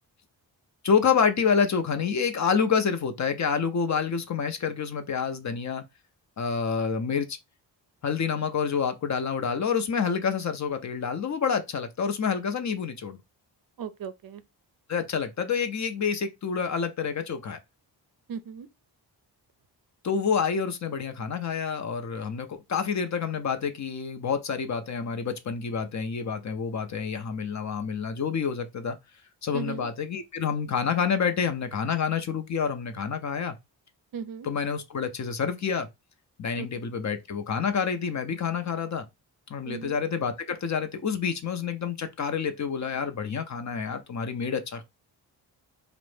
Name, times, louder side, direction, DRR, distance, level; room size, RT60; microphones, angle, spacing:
voice 1, 0.8-5.8 6.4-7.4 8.0-13.2 14.9-17.6 20.0-29.0 29.4-33.5 34.4-35.9 36.4-39.1 39.5-44.8, left 6 dB, 40° left, 0.5 m, -28 dB
voice 2, 13.8-14.4 18.3-18.7 29.5-29.9 34.1-34.5 36.6-36.7 39.6-40.0, right 7 dB, 55° right, 0.5 m, -36 dB
2.4 x 2.0 x 3.2 m
cardioid pair, 50°, 44 cm